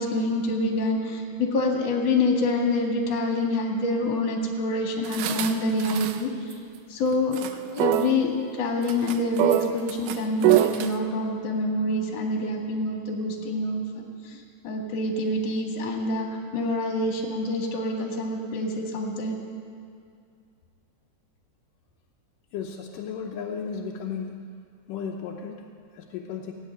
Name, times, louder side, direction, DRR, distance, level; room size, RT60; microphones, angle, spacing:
voice 1, 0.0-6.3 6.9-16.3 16.5-19.4, left 2 dB, 55° left, 1 dB, 2.8 m, -26 dB
sound 1, 5.0-6.2 6.5-6.6 7.1-7.5 7.8-8.1 8.9-10.9, right 13 dB, 85° right, 2.3 m, -24 dB
voice 2, 22.5-24.5 24.9-26.5, left 6 dB, 80° left, 1 dB, 2.5 m, -35 dB
16.5 x 8.3 x 9.2 m, 2.3 s
omnidirectional pair, 3.8 m